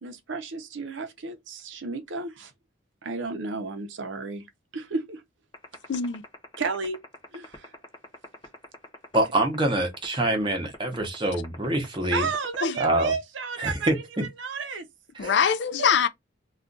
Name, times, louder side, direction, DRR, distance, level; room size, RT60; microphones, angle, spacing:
voice 1, 0.0-2.5 3.0-4.4 4.7-5.2 6.6-7.0 7.3-7.8 12.1-13.9 14.2-14.9 15.2-15.3 15.8-15.9, right 4 dB, 75° right, 0.7 m, -32 dB
sound 1, 5.5-13.1, left 3 dB, 25° left, 0.9 m, -43 dB
voice 2, 5.9-6.2 12.6-12.8 15.2-16.1, left 7 dB, 65° left, 0.4 m, -23 dB
voice 3, 9.1-12.3 12.8-13.1 13.6-14.2 15.1-15.3, right 1 dB, 25° right, 0.8 m, -25 dB
2.4 x 2.3 x 3.7 m
head